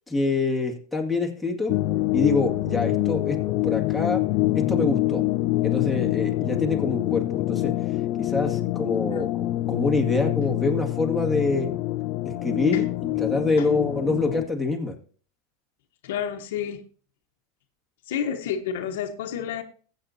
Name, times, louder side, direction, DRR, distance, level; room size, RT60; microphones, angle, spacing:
voice 1, 0.1-1.7 2.1-3.4 3.6-4.2 4.5-5.2 5.6-7.7 8.2-11.7 12.4-15.0, left 3 dB, ahead, 2.1 m, -26 dB
sound 1, 1.7-14.5, left 16 dB, 55° left, 0.6 m, -25 dB
voice 2, 16.0-16.8 18.1-19.6, left 8 dB, 80° left, 1.1 m, -30 dB
15.5 x 7.9 x 2.7 m
supercardioid pair, 125°, 0 cm